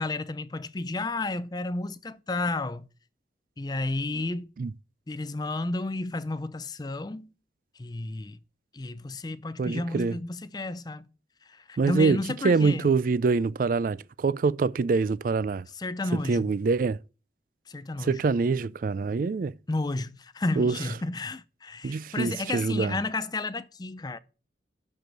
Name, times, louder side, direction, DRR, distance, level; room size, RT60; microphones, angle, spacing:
voice 1, 0.0-2.9 3.6-4.5 5.1-7.3 7.7-8.4 8.7-11.1 11.4-12.9 15.7-16.5 17.7-18.2 19.7-24.2, left 2 dB, 25° left, 0.5 m, -32 dB
voice 2, 9.6-10.2 11.8-12.2 12.4-15.7 16.3-17.0 18.0-19.5 20.6-20.7 21.8-22.9, right 4 dB, 50° right, 0.3 m, -25 dB
12.0 x 4.8 x 3.8 m
head